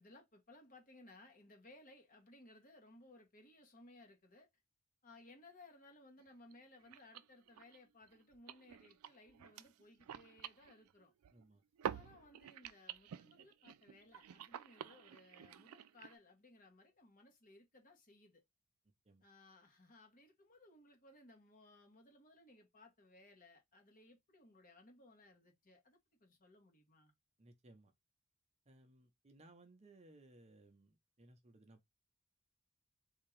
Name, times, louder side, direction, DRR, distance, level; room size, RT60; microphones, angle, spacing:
voice 1, 0.0-4.5 5.0-11.1 11.9-18.4 19.2-27.1, left 2 dB, 40° left, 1.2 m, -62 dB
sound 1, 6.2-6.3 6.5-6.6 6.8-11.5 11.8-16.2, right 9 dB, 80° right, 0.4 m, -49 dB
voice 2, 11.3-11.6 19.1-19.2 27.4-27.9 28.7-31.9, right 2 dB, 30° right, 0.7 m, -63 dB
3.6 x 2.8 x 3.2 m
head